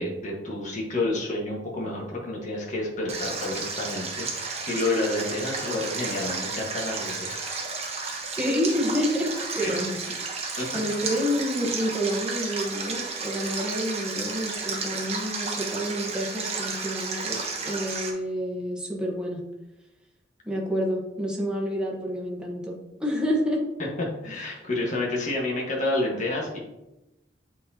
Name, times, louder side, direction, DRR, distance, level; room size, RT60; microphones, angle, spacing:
voice 1, 0.0-7.5 9.5-9.8 10.6-10.7 23.8-23.9 24.2-26.6, left 2 dB, 45° left, -3 dB, 1.5 m, -29 dB
Stream, 3.1-18.1, right 4 dB, 35° right, 1.1 m, -32 dB
voice 2, 8.3-17.4 17.6-19.4 20.4-23.6 24.2-24.3, equal, 5° right, -3 dB, 1.2 m, -29 dB
8.3 x 4.2 x 2.9 m, 0.95 s
head